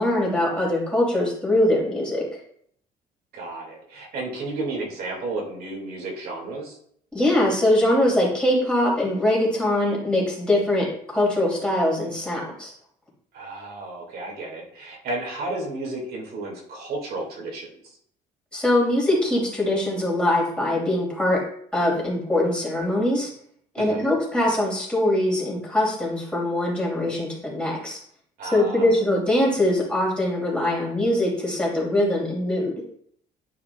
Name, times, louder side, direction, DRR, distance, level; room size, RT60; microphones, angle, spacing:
voice 1, 0.0-2.2 7.1-12.7 18.5-21.4 21.7-23.3 23.7-28.0 28.5-32.7, left 1 dB, 5° left, -4 dB, 2.8 m, -22 dB
voice 2, 3.3-6.8 13.3-18.0 23.8-24.1 28.4-28.9, right 2 dB, 65° right, -1 dB, 2.1 m, -33 dB
9.7 x 4.9 x 2.3 m, 0.66 s
cardioid pair, 110°, 17 cm